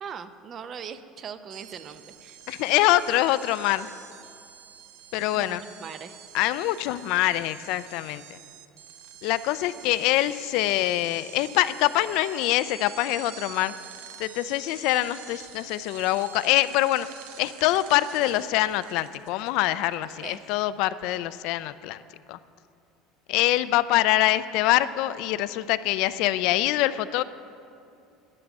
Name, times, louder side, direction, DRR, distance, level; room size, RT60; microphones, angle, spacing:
voice 1, 0.0-2.4 5.3-6.2 20.2-20.4, right 7 dB, 35° right, 11 dB, 0.6 m, -40 dB
sound 1, 1.5-20.6, right 9 dB, 75° right, 0.8 m, -47 dB
voice 2, 2.5-3.9 5.1-5.6 6.3-8.2 9.2-13.7 14.2-17.1 17.4-22.0 22.3-22.4 23.3-27.2, left 15 dB, 65° left, 14 dB, 0.4 m, -24 dB
11.0 x 10.0 x 7.1 m, 2.6 s
cardioid pair, 145°, 0 cm